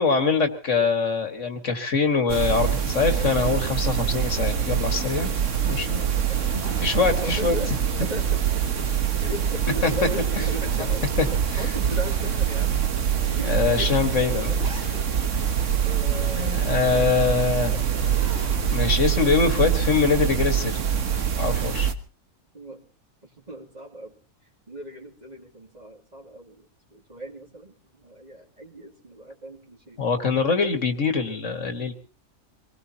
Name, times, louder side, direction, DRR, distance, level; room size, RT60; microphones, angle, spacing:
voice 1, 0.0-5.4 5.6-6.0 6.8-7.6 9.8-9.9 11.2-11.3 11.5-11.6 13.4-14.5 16.4-17.7 18.7-20.8 21.4-21.9 30.0-31.9, left 5 dB, 65° left, 7 dB, 2.0 m, -23 dB
sound 1, 2.3-21.9, right 8 dB, 65° right, 1.6 m, -25 dB
voice 2, 5.6-8.4 9.2-11.1 11.6-12.8 13.3-14.6 15.8-16.6 16.9-17.1 17.7-18.3 22.5-22.8 23.2-24.2 24.7-30.0, right 1 dB, 30° right, 0 dB, 3.0 m, -38 dB
Zipper (clothing), 6.4-9.1 9.4-9.5 10.1-11.9 12.7-12.8 13.8-15.3 17.8-18.7 20.0-20.5, right 3 dB, 45° right, 2.1 m, -41 dB
25.5 x 20.0 x 2.9 m, 0.35 s
omnidirectional pair, 1.4 m